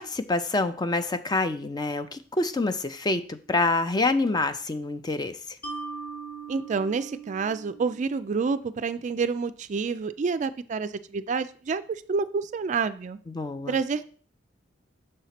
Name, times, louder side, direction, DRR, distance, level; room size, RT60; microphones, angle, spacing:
voice 1, 0.0-5.4 13.3-13.8, left 2 dB, 20° left, 10 dB, 0.5 m, -27 dB
Mallet percussion, 5.6-8.9, right 4 dB, 50° left, 1.4 m, -40 dB
voice 2, 6.5-13.2 13.7-14.0, right 5 dB, 40° right, 12 dB, 0.3 m, -28 dB
6.5 x 4.1 x 5.8 m, 0.43 s
head